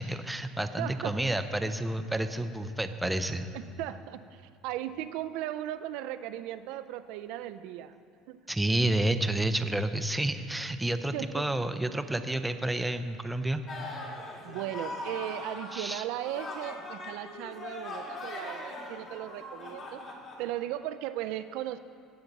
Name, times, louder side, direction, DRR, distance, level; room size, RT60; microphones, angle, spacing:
voice 1, 0.0-3.5 8.5-13.6 15.7-16.0, right 1 dB, 5° right, 9 dB, 0.5 m, -30 dB
voice 2, 0.8-1.2 3.5-8.0 8.3-8.4 11.1-11.5 14.4-20.0 20.4-21.8, right 12 dB, 75° right, 11 dB, 0.4 m, -37 dB
sound 1, 13.7-15.9 16.2-20.4, left 2 dB, 45° left, 2.2 m, -40 dB
17.0 x 5.9 x 4.0 m, 2.5 s
cardioid pair, 125°, 0 cm